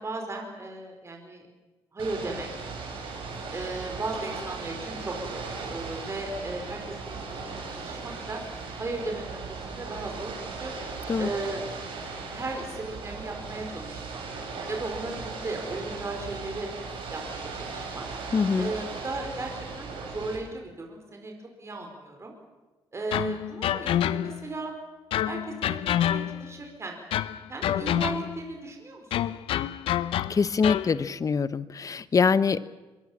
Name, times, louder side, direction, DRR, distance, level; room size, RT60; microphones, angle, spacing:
voice 1, 0.0-1.5 1.9-2.5 3.5-8.4 8.8-9.4 9.6-10.7 11.2-11.6 12.3-14.2 14.7-16.7 17.1-18.0 18.6-21.3 21.6-22.3 22.9-24.7 25.2-27.0 27.5-29.4, right 2 dB, 30° right, 2 dB, 4.8 m, -36 dB
Ocean / Boat Water vehicle, 2.0-20.4, right 4 dB, 75° right, 7.3 m, -38 dB
voice 2, 18.3-18.7 30.3-32.7, left 5 dB, 40° left, 16 dB, 1.0 m, -24 dB
sound 1, 23.1-24.5 25.1-26.6 27.1-28.5 29.1-31.0, left 11 dB, 85° left, 0.7 m, -28 dB
23.5 x 23.0 x 7.4 m, 1.2 s
cardioid pair, 90°, 9 cm